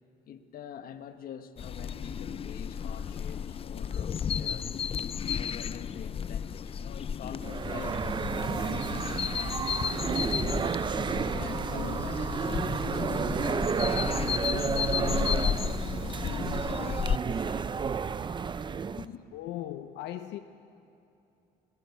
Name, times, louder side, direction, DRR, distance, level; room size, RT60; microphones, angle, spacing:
voice 1, 0.3-4.7 5.3-9.8 10.4-15.8 16.2-17.7 19.0-19.2, left 9 dB, 60° left, 1.3 m, -45 dB
sound 1, 1.6-17.2, left 7 dB, 35° left, 0.6 m, -33 dB
sound 2, 7.4-19.0, right 6 dB, 25° right, 0.6 m, -31 dB
voice 2, 19.3-20.4, left 13 dB, 90° left, 0.8 m, -38 dB
21.5 x 21.0 x 8.4 m
cardioid pair, 110°, 17 cm